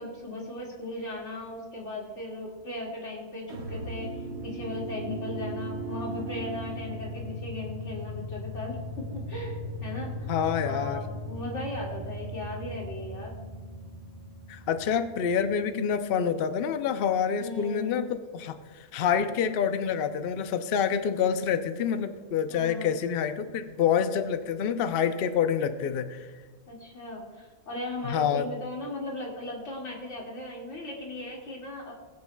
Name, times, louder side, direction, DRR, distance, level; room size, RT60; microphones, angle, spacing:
voice 1, 0.0-4.1 4.4-10.1 10.6-13.3 17.4-18.1 22.5-23.0 26.7-31.9, left 2 dB, 45° left, -3 dB, 2.5 m, -37 dB
sound 1, 3.5-15.7, equal, 85° right, 1.9 m, -38 dB
voice 2, 10.3-11.1 14.5-18.6 18.9-26.3 28.0-28.5, left 7 dB, 70° left, 9 dB, 0.5 m, -27 dB
20.0 x 8.7 x 2.2 m, 1.4 s
omnidirectional pair, 1.7 m